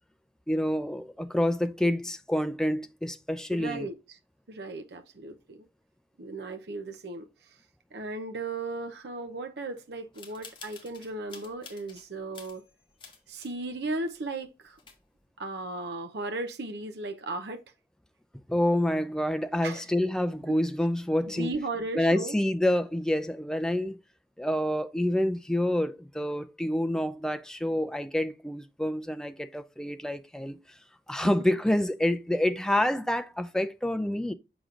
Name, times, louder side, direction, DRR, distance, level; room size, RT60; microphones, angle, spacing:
voice 1, 0.5-3.9 18.5-21.5 21.9-24.0 24.4-30.6 31.1-34.3, left 1 dB, 5° left, 0.4 m, -27 dB
voice 2, 3.5-4.2 4.5-5.7 6.2-7.6 7.9-12.6 13.3-14.8 15.4-17.6 19.6-19.9 20.5-20.6 21.3-22.4, right 2 dB, 70° right, 0.7 m, -36 dB
sound 1, 10.1-12.1 12.3-13.6 13.9-14.0 14.5-14.6 14.7-15.2, left 5 dB, 30° left, 1.3 m, -49 dB
6.6 x 6.0 x 2.4 m
head